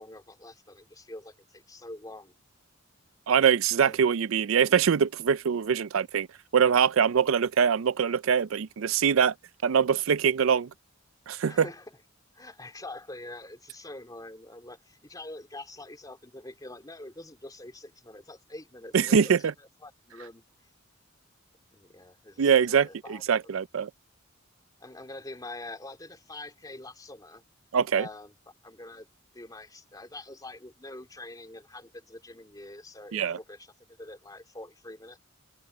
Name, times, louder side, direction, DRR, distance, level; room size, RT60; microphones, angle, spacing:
voice 1, 0.0-2.3 3.9-4.1 11.5-11.9 12.3-20.4 21.7-23.5 24.8-27.4 27.9-28.3 28.6-29.1 29.3-33.7 34.0-35.2, left 2 dB, 20° left, 3.3 m, -45 dB
voice 2, 3.3-6.3 6.5-9.3 9.6-10.7 11.3-11.7 18.9-19.4 22.4-23.9 27.7-28.1 33.1-33.4, right 7 dB, 70° right, 0.4 m, -23 dB
head